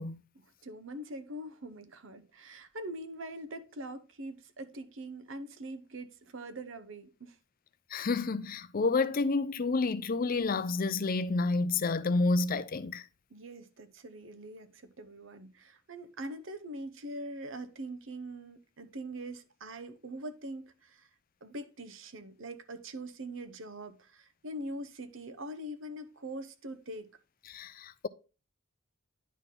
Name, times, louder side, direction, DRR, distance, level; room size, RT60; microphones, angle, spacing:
voice 1, 0.4-7.4 13.3-21.1 21.4-27.1, right 1 dB, 60° right, 0.9 m, -43 dB
voice 2, 7.9-13.0 27.5-28.1, left 3 dB, 40° left, 0.5 m, -29 dB
10.5 x 4.0 x 3.7 m
head